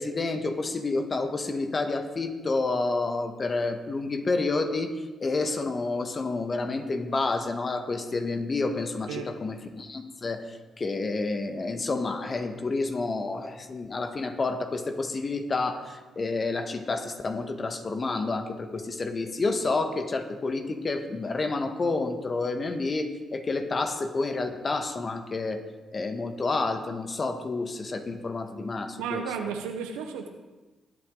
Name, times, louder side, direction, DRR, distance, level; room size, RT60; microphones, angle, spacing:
voice 1, 0.0-4.9 5.2-25.6 25.9-29.2, left 3 dB, 40° left, 7 dB, 1.6 m, -29 dB
voice 2, 29.0-30.3, right 6 dB, 85° right, 5 dB, 1.1 m, -33 dB
21.0 x 8.7 x 3.9 m, 1.2 s
hypercardioid pair, 45°, 0 cm